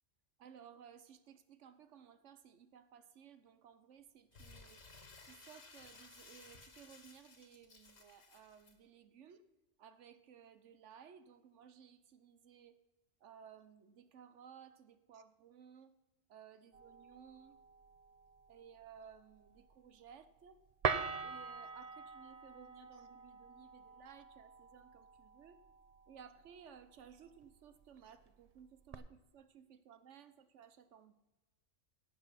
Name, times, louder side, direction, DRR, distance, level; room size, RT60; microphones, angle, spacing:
voice 1, 0.4-4.8 5.2-9.4 9.8-12.8 13.2-15.9 16.3-17.6 18.5-20.6 21.2-25.6 26.1-31.1, right 8 dB, 70° right, 12 dB, 1.1 m, -58 dB
Crumpling crinkling, 4.3-8.7, left 3 dB, 55° left, 1.8 m, -58 dB
sound 1, 16.7-28.9, right 5 dB, 45° right, 0.5 m, -45 dB
17.5 x 6.8 x 5.7 m, 1.1 s
omnidirectional pair, 1.3 m